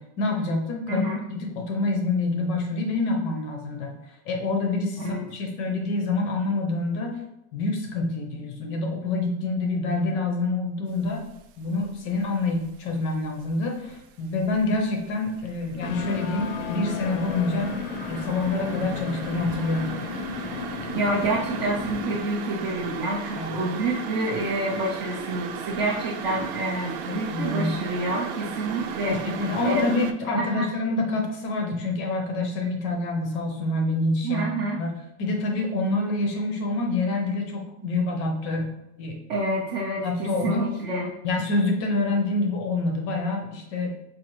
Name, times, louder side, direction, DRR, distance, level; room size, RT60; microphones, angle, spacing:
voice 1, 0.0-4.0 4.3-7.2 7.5-11.2 11.6-17.8 18.1-19.9 23.4-23.7 27.1-27.7 29.1-38.7 39.0-39.2 40.0-40.7 41.2-43.9, left 2 dB, 30° left, 3 dB, 0.5 m, -27 dB
voice 2, 0.9-1.2 5.0-5.2 20.9-29.9 30.4-30.7 34.2-34.8 39.3-41.1, right 1 dB, 35° right, -3 dB, 0.4 m, -28 dB
sound 1, 11.1-11.5 11.8-13.4 13.7-30.1, right 7 dB, 85° right, 0.6 m, -37 dB
sound 2, 15.8-22.2, left 5 dB, 90° left, 0.7 m, -33 dB
5.0 x 2.4 x 3.0 m, 0.89 s
supercardioid pair, 180°, 42 cm